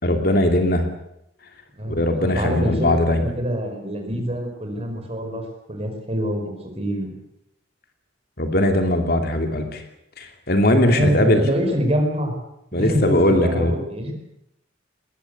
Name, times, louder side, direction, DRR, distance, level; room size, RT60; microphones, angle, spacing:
voice 1, 0.0-0.9 1.9-3.2 8.4-9.8 10.2-11.4 12.7-13.8, left 1 dB, 50° left, 5 dB, 2.7 m, -19 dB
voice 2, 1.8-5.4 5.7-7.1 10.9-12.3 12.7-14.1, equal, 30° right, 5 dB, 4.9 m, -25 dB
21.0 x 19.0 x 8.2 m, 0.80 s
head